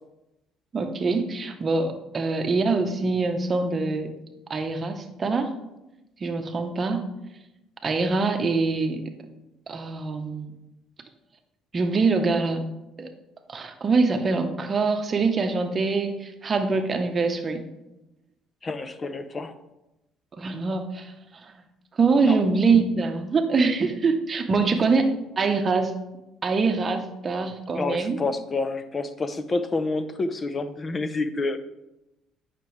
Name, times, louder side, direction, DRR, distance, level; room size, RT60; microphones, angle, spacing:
voice 1, 0.7-4.1 4.5-5.5 6.2-7.0 7.8-9.0 9.7-10.5 11.7-12.6 13.0-13.1 13.5-17.7 20.4-21.1 21.4-21.5 22.0-25.9 26.4-28.2, right 4 dB, 30° right, 6 dB, 0.9 m, -24 dB
voice 2, 18.6-19.6 22.2-22.4 27.7-31.6, left 3 dB, 30° left, 11 dB, 0.6 m, -28 dB
8.9 x 5.9 x 3.2 m, 0.96 s
cardioid pair, 100°, 0 cm